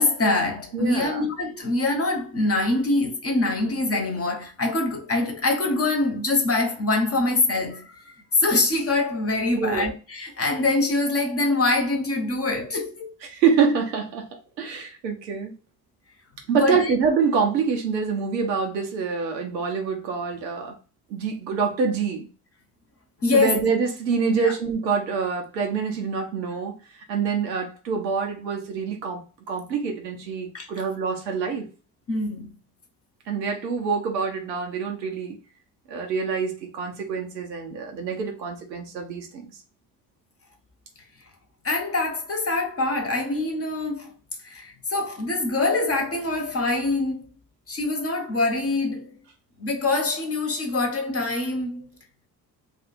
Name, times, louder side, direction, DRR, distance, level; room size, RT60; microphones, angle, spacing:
voice 1, 0.0-13.1 16.6-16.9 23.2-23.6 24.3-24.5 30.5-30.7 32.1-32.5 41.6-44.1 44.4-47.3 47.7-49.2 49.6-51.9, left 2 dB, 30° left, 1.0 m, -24 dB
voice 2, 0.7-1.2 9.5-9.9 13.3-14.3 14.6-15.5 16.5-20.8 21.1-22.3 23.3-26.7 27.1-29.2 29.5-31.7 33.3-35.4 35.9-39.4, right 5 dB, 85° right, 0.7 m, -26 dB
2.5 x 2.4 x 4.1 m
figure-of-eight pair, 45°, 49 cm